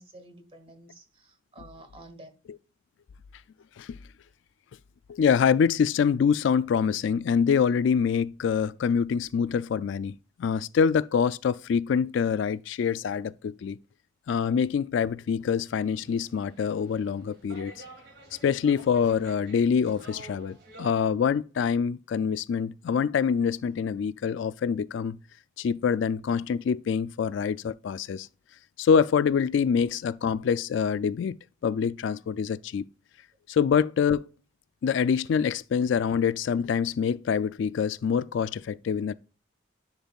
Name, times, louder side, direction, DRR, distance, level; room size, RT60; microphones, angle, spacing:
voice 1, 0.0-2.3, right 1 dB, 30° right, 1.3 m, -50 dB
voice 2, 5.1-13.8 14.3-17.7 18.4-25.2 25.6-28.3 28.8-31.4 31.6-32.9 33.5-34.3 34.8-39.1, left 6 dB, 65° left, 0.3 m, -25 dB
sound 1, 15.7-20.9, right 2 dB, 55° right, 2.7 m, -50 dB
10.5 x 5.4 x 2.4 m
head